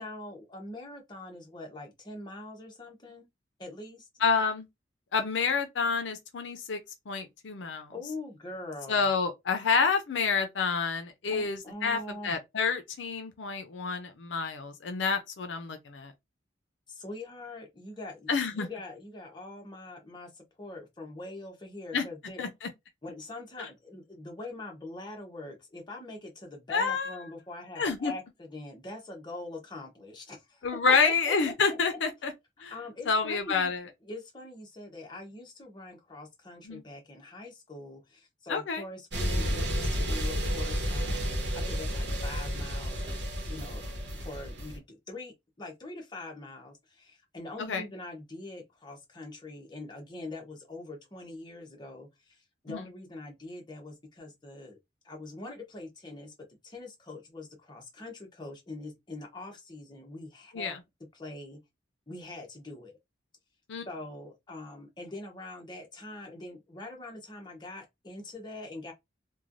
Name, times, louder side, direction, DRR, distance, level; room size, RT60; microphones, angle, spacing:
voice 1, 0.0-3.3 3.6-4.1 7.9-9.1 11.3-12.3 16.9-22.5 23.0-31.8 32.7-33.7 34.0-43.8 44.1-52.4 52.6-54.8 55.0-56.3 56.6-60.7 61.1-61.6 62.1-63.0 63.9-68.9, left 2 dB, 25° left, 0.9 m, -43 dB
voice 2, 4.2-4.7 5.1-6.8 7.1-7.9 8.9-16.1 18.3-18.7 21.9-22.0 22.4-22.7 26.7-27.2 27.8-28.1 30.6-32.3 32.6-32.7 33.1-33.9 36.6-36.8 38.5-38.8 47.6-47.9 52.7-52.8 60.5-60.8 63.7-63.9, left 5 dB, 75° left, 0.5 m, -28 dB
sound 1, 39.1-44.8, equal, 65° right, 1.0 m, -31 dB
3.1 x 2.2 x 2.5 m
head